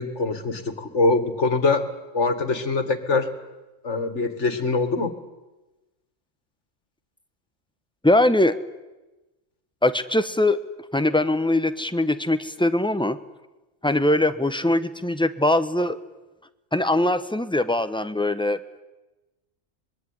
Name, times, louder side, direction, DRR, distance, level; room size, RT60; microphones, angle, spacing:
voice 1, 0.0-1.9 2.1-3.3 3.8-5.1, left 3 dB, 65° left, 10 dB, 2.4 m, -23 dB
voice 2, 8.0-8.5 9.8-10.6 10.9-13.2 13.8-16.0 16.7-18.8, left 1 dB, 5° left, 11 dB, 0.9 m, -21 dB
25.0 x 21.5 x 9.8 m, 1.1 s
omnidirectional pair, 1.3 m